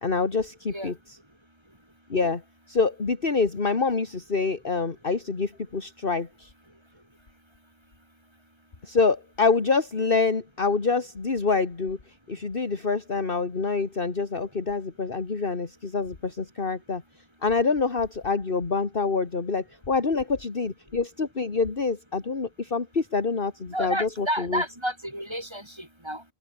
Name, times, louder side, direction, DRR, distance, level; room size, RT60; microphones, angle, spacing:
voice 1, 0.0-1.2 2.1-2.4 2.7-6.5 8.8-12.0 12.3-17.0 17.4-24.6, left 4 dB, 45° left, 2.2 m, -26 dB
voice 2, 23.7-26.2, equal, 20° right, 7.6 m, -31 dB
open air
omnidirectional pair, 1.3 m